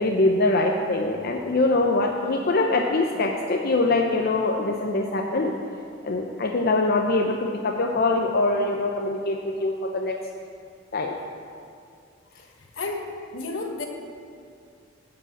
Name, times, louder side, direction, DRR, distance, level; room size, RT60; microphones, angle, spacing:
voice 1, 0.0-5.5 6.0-10.2 10.9-11.2, left 2 dB, 50° left, 1 dB, 0.6 m, -23 dB
voice 2, 12.8-13.8, left 3 dB, 75° left, 2 dB, 1.2 m, -31 dB
12.0 x 4.8 x 7.2 m, 2.3 s
head